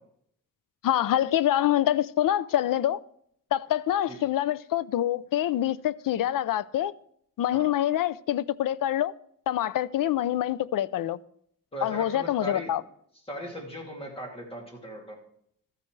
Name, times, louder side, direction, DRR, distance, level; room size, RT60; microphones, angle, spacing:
voice 1, 0.8-3.0 3.5-6.9 7.4-9.1 9.5-11.2 11.8-12.8, left 12 dB, 85° left, 0.5 m, -26 dB
voice 2, 11.7-12.7 13.3-15.2, equal, 15° left, 2.6 m, -38 dB
13.0 x 9.6 x 3.2 m
wide cardioid pair, 170°, 32 cm